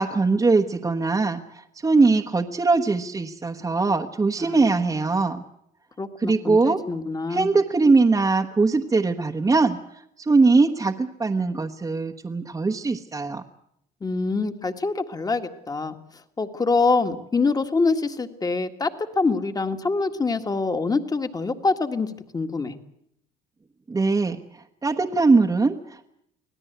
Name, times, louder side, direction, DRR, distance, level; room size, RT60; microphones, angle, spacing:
voice 1, 0.0-5.4 6.2-6.8 7.3-9.8 10.3-13.4 23.9-24.4 24.8-26.1, right 3 dB, 20° right, 0 dB, 1.2 m, -21 dB
voice 2, 4.4-4.7 6.0-7.5 14.0-16.0 16.4-18.9 19.2-22.8, left 3 dB, 20° left, 8 dB, 1.8 m, -25 dB
25.5 x 17.5 x 8.1 m, 0.74 s
cardioid pair, 110°, 17 cm